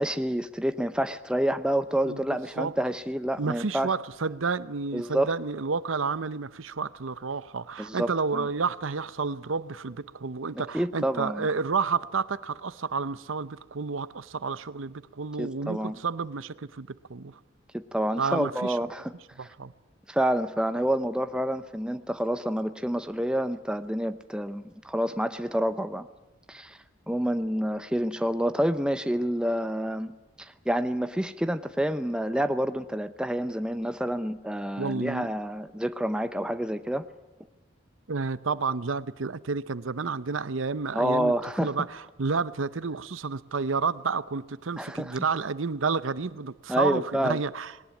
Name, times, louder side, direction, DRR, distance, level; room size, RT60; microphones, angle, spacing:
voice 1, 0.0-3.9 4.9-5.3 7.8-8.5 10.7-11.5 15.4-16.0 17.7-19.1 20.1-26.1 26.5-26.8 27.1-37.0 40.9-41.7 44.8-45.2 46.7-47.4, equal, 5° right, 0.7 m, -28 dB
voice 2, 3.4-17.4 18.2-18.8 19.4-19.7 34.8-35.3 38.1-47.7, right 4 dB, 80° right, 0.7 m, -30 dB
20.0 x 18.5 x 9.3 m
head